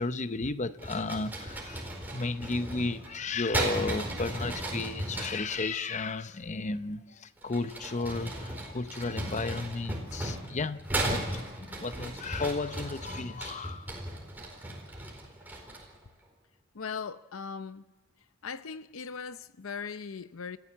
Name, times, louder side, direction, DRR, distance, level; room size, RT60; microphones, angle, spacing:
voice 1, 0.0-1.9 2.1-13.9, left 3 dB, 35° left, 0.7 m, -34 dB
sound 1, 0.8-5.6 7.4-16.0, right 1 dB, 10° right, 4.4 m, -36 dB
voice 2, 16.7-17.8 18.4-20.6, left 5 dB, 75° left, 0.7 m, -39 dB
30.0 x 14.5 x 7.3 m
head